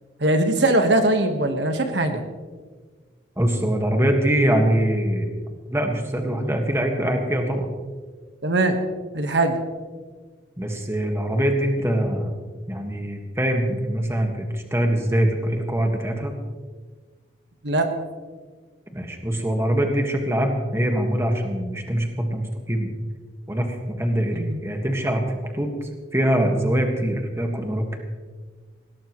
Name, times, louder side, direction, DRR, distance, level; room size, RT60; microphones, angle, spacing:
voice 1, 0.2-2.2 8.4-8.8 9.1-9.6 17.6-17.9 24.3-24.6, right 2 dB, 70° right, 6 dB, 1.5 m, -21 dB
voice 2, 3.4-5.3 5.7-7.7 10.6-12.3 12.7-16.4 18.9-22.9 23.5-28.0, right 1 dB, 15° right, 2 dB, 1.7 m, -23 dB
20.5 x 17.5 x 3.2 m, 1.5 s
head